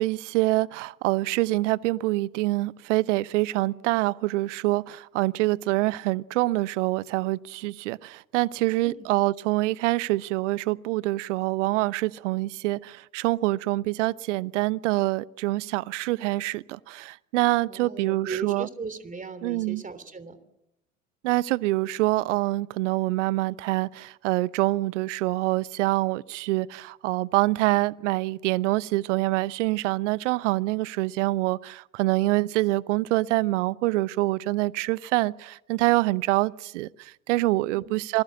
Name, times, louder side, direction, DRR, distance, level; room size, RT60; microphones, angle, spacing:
voice 1, 0.0-18.7 19.4-19.8 21.2-38.2, right 19 dB, 65° right, 0.9 m, -25 dB
voice 2, 17.7-20.4 37.7-38.0, right 5 dB, 20° right, 3.2 m, -37 dB
27.0 x 20.5 x 7.7 m
figure-of-eight pair, 75°, 40 cm